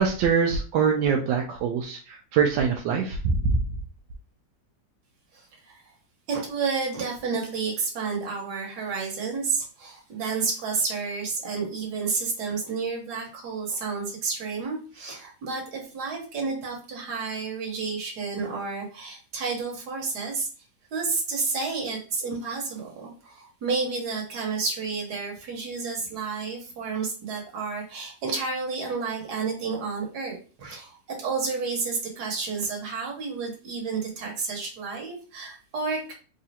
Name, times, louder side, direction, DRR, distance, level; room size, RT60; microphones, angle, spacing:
voice 1, 0.0-3.6, right 6 dB, 85° right, 1 dB, 1.3 m, -23 dB
voice 2, 5.3-5.8 6.3-20.5 20.9-36.1, right 4 dB, 65° right, 0 dB, 1.6 m, -30 dB
3.7 x 3.1 x 2.8 m, 0.38 s
omnidirectional pair, 1.9 m